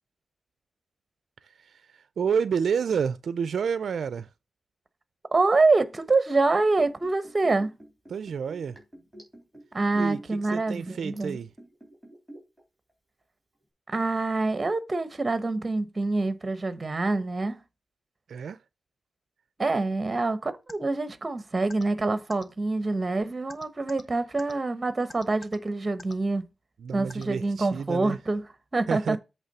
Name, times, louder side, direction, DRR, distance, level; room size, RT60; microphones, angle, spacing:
voice 1, 1.4-4.3 8.1-8.8 9.9-11.5 18.3-18.6 26.8-28.2 28.9-29.2, right 6 dB, 70° right, 0.4 m, -30 dB
voice 2, 5.3-7.7 9.7-11.4 13.9-17.6 19.6-26.5 26.9-28.4 28.7-29.2, right 3 dB, 25° right, 0.9 m, -26 dB
Liquid, 6.4-12.6 12.9-13.0, equal, ahead, 3.4 m, -48 dB
sound 1, 20.7-20.8 21.7-21.8 22.3-22.4 23.5-24.0 24.4-24.5 25.1-25.6 26.0-26.2 27.1-27.2, left 2 dB, 35° left, 0.8 m, -43 dB
8.2 x 3.4 x 6.6 m
wide cardioid pair, 125°, 0 cm